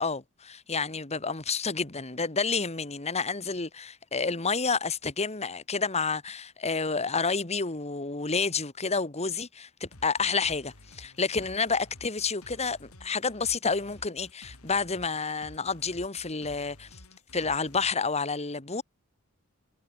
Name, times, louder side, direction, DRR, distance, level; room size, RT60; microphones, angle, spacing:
voice 1, 0.0-17.0 17.3-18.8, left 4 dB, 30° left, 1.9 m, -29 dB
sound 1, 9.9-17.9, left 1 dB, 90° left, 4.1 m, -52 dB
head